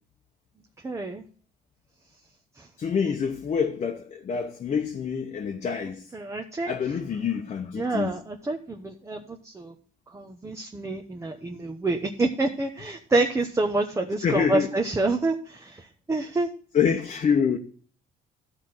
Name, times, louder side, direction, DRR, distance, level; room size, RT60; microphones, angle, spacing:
voice 1, 0.8-1.2 2.6-2.7 6.1-6.7 7.7-9.7 10.1-16.5, right 2 dB, 15° right, 1.0 m, -28 dB
voice 2, 2.8-6.0 6.7-8.1 14.2-14.7 16.7-17.6, left 6 dB, 40° left, 1.0 m, -26 dB
12.5 x 4.4 x 7.7 m
cardioid pair, 110°, 17 cm